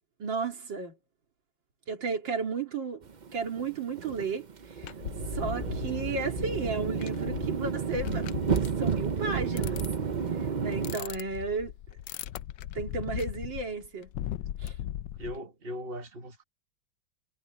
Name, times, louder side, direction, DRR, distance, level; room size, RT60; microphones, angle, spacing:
voice 1, 0.2-1.0 1.9-4.5 4.8-4.9 5.3-9.8 10.6-11.7 12.7-14.1 14.6-14.7, right 4 dB, 85° right, 3.4 m, -33 dB
sound 1, 3.0-11.0, right 6 dB, 60° right, 0.4 m, -31 dB
sound 2, 4.8-15.4, left 12 dB, 90° left, 1.4 m, -39 dB
voice 2, 15.2-16.4, equal, 30° right, 1.6 m, -39 dB
omnidirectional pair, 2.0 m